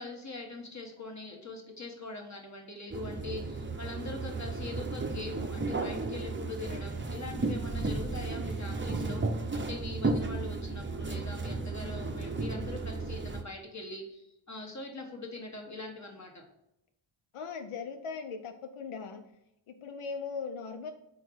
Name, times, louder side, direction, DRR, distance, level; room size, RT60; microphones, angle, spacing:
voice 1, 0.0-16.4, left 2 dB, 35° left, 1 dB, 1.4 m, -42 dB
sound 1, 2.9-13.4, right 3 dB, 25° right, 0.6 m, -34 dB
voice 2, 17.3-19.3 19.7-20.9, left 5 dB, 90° left, 7 dB, 0.6 m, -39 dB
4.7 x 4.4 x 5.5 m, 0.82 s
wide cardioid pair, 90°, 49 cm